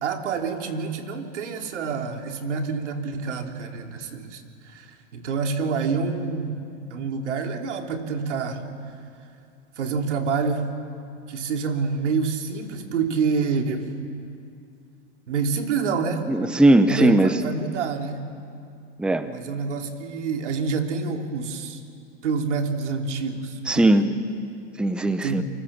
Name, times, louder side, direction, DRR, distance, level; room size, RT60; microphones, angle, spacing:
voice 1, 0.0-6.6 6.9-8.6 9.8-10.7 11.3-13.9 15.3-16.2 16.9-18.2 19.3-21.8 22.2-24.0 25.2-25.4, right 5 dB, 90° right, 4 dB, 3.1 m, -27 dB
voice 2, 16.3-17.4 19.0-19.3 23.7-24.1 24.8-25.4, right 1 dB, 5° right, 10 dB, 0.8 m, -18 dB
28.0 x 24.5 x 7.3 m, 2.4 s
supercardioid pair, 135°, 34 cm